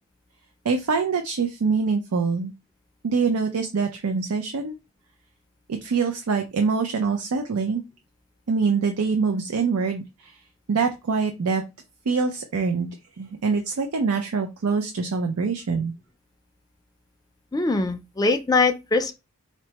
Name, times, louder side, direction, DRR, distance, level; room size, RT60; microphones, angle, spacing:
voice 1, 0.6-2.5 3.0-4.7 5.7-7.8 8.5-10.4 10.7-11.6 12.1-15.9, right 5 dB, 90° right, 0.5 m, -24 dB
voice 2, 17.5-19.1, left 3 dB, 15° left, 0.4 m, -22 dB
4.4 x 2.1 x 2.8 m
head